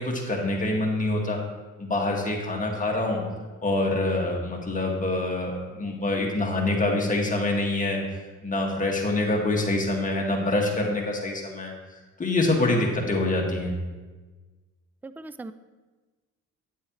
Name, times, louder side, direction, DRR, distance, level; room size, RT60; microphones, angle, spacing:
voice 1, 0.0-1.4 1.8-3.2 3.6-8.0 8.4-11.7 12.2-13.7, left 2 dB, 25° left, 0 dB, 1.9 m, -25 dB
voice 2, 15.0-15.5, right 3 dB, 5° right, 12 dB, 0.3 m, -39 dB
9.5 x 8.7 x 3.1 m, 1.3 s
cardioid pair, 90°, 30 cm